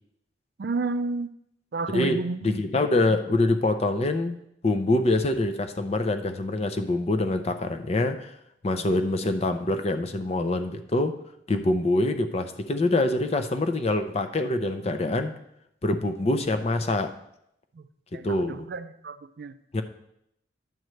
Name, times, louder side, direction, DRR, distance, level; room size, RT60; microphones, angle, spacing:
voice 1, 0.6-1.3 1.7-2.6 17.7-17.9 18.1-19.6, right 3 dB, 55° right, 12 dB, 0.4 m, -31 dB
voice 2, 1.9-2.2 2.4-4.4 4.6-8.4 8.6-11.1 11.5-15.3 15.8-17.1 18.2-18.7 19.7-19.8, left 2 dB, 35° left, 8 dB, 0.5 m, -25 dB
10.5 x 7.7 x 3.1 m, 0.77 s
head